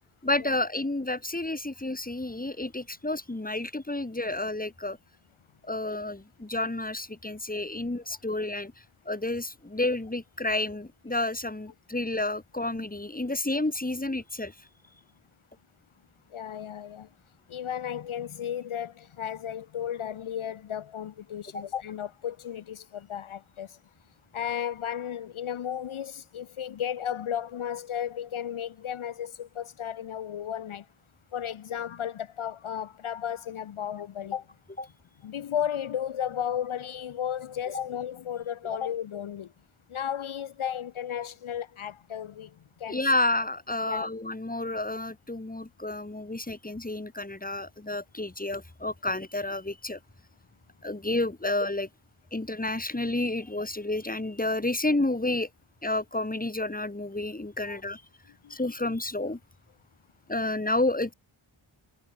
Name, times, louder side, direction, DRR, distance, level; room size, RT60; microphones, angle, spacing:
voice 1, 0.2-5.0 5.6-8.7 9.1-14.5 21.5-21.6 42.9-50.0 50.8-51.9 52.3-55.5 55.8-58.0 58.5-59.4 60.3-61.1, left 2 dB, 15° left, 2.9 m, -30 dB
voice 2, 16.3-17.1 17.5-23.8 24.3-30.8 31.3-34.4 35.2-39.5 39.9-42.5 42.8-43.0 43.9-44.1 57.6-57.8 58.4-58.6, left 9 dB, 75° left, 0.9 m, -34 dB
wide cardioid pair, 85°, 49 cm